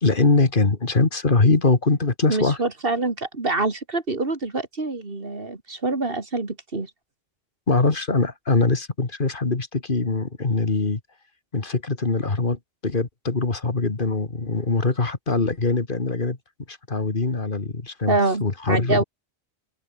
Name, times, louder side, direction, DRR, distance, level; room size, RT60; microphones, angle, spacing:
voice 1, 0.0-2.6 7.7-11.0 11.5-16.4 16.7-19.0, left 3 dB, 45° left, 2.2 m, -22 dB
voice 2, 2.3-6.9 18.1-19.0, right 3 dB, 50° right, 2.9 m, -25 dB
open air
omnidirectional pair, 1.2 m